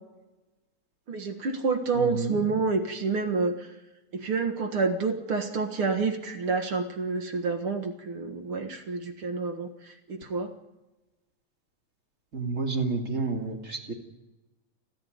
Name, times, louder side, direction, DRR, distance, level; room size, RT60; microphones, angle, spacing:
voice 1, 1.1-3.7 4.1-10.5, right 4 dB, 50° right, 6 dB, 2.1 m, -28 dB
voice 2, 1.9-2.4 12.3-13.9, right 4 dB, 25° right, 2 dB, 2.6 m, -30 dB
30.0 x 10.5 x 9.4 m, 1.1 s
omnidirectional pair, 3.7 m